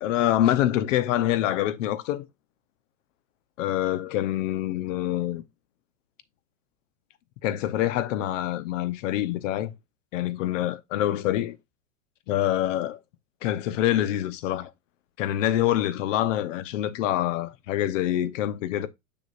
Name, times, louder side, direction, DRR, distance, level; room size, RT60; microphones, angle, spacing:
voice 1, 0.0-2.3 3.6-5.4 7.4-9.7 10.1-11.6 12.3-13.0 13.4-14.7 15.2-18.9, left 12 dB, 65° left, 1.0 m, -26 dB
6.6 x 6.1 x 2.5 m
hypercardioid pair, 120°, 41 cm